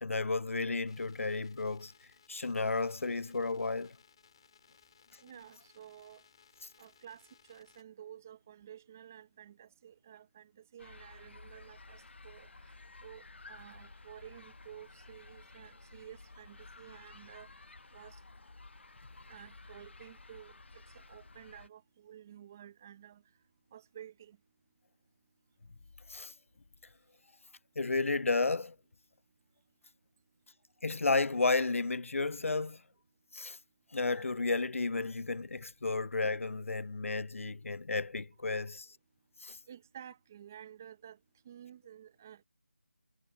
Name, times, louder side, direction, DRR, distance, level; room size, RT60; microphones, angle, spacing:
voice 1, 0.0-1.9 2.3-4.0 26.1-26.3 27.8-28.8 30.8-32.8 33.3-33.6 33.9-38.9 39.4-39.6, left 3 dB, 75° left, 0.4 m, -32 dB
sound 1, 0.9-7.8, left 7 dB, 20° left, 5.6 m, -64 dB
voice 2, 5.2-6.2 6.8-7.2 7.5-12.7 13.0-17.5 17.9-18.2 19.3-23.2 23.7-24.4 38.5-38.7 39.7-41.2 41.4-42.4, right 10 dB, 10° right, 0.9 m, -52 dB
sound 2, 10.8-21.7, left 3 dB, 55° left, 1.0 m, -54 dB
figure-of-eight pair, 175°, 7 cm